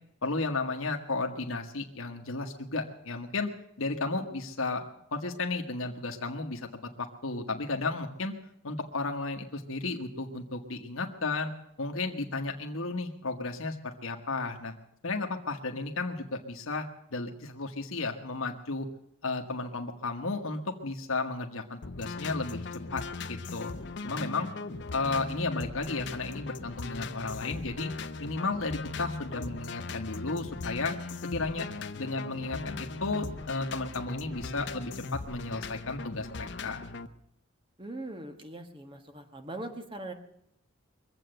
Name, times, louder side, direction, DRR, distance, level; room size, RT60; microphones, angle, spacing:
voice 1, 0.2-3.5 3.8-4.8 5.1-6.7 7.0-8.3 8.6-11.5 11.8-14.7 15.0-16.9 17.1-18.9 19.2-23.0 23.3-23.7 24.0-24.5 24.9-27.9 28.2-31.0 31.3-31.7 32.0-36.8, left 3 dB, 80° left, 3 dB, 1.3 m, -33 dB
sound 1, 21.8-37.1, left 3 dB, 55° left, 0.7 m, -39 dB
voice 2, 37.8-40.1, right 1 dB, 25° right, 6 dB, 1.5 m, -41 dB
22.5 x 7.9 x 7.8 m, 0.78 s
head